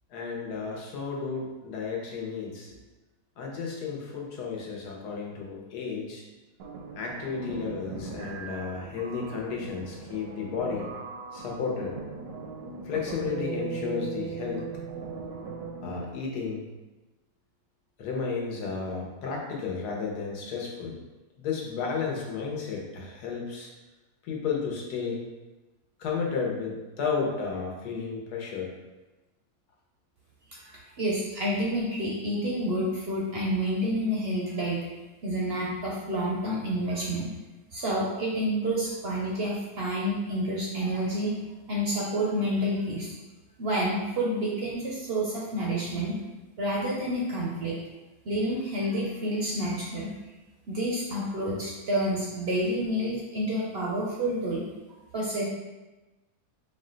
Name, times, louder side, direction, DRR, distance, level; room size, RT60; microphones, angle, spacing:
voice 1, 0.1-2.8 3.4-6.2 7.0-10.9 11.3-11.9 12.8-14.6 15.8-16.7 18.0-20.9 21.4-23.7 24.2-25.2 26.0-28.7, left 5 dB, 85° left, -1 dB, 1.4 m, -33 dB
sound 1, 6.6-16.1, right 4 dB, 80° right, 1.1 m, -38 dB
voice 2, 30.5-34.8 35.2-37.3 37.7-41.4 41.7-43.1 43.6-46.2 46.6-47.8 48.2-50.1 50.7-54.6 55.1-55.4, equal, 65° right, -3 dB, 0.6 m, -29 dB
4.6 x 2.2 x 3.7 m, 1.1 s
omnidirectional pair, 1.7 m